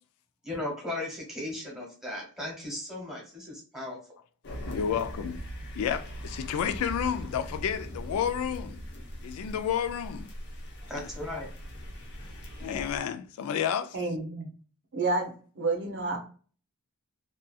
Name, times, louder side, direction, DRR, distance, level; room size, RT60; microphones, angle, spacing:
voice 1, 0.4-4.0 9.4-9.5 10.8-11.5, left 1 dB, ahead, 1.2 m, -36 dB
sound 1, 4.4-13.0, equal, 50° left, 0.7 m, -40 dB
voice 2, 4.6-5.4 5.8-8.8 9.2-10.3 11.0-11.1 12.6-14.0, left 8 dB, 70° left, 0.3 m, -31 dB
voice 3, 13.9-14.5 14.9-16.2, right 3 dB, 55° right, 0.7 m, -30 dB
2.7 x 2.3 x 2.3 m
head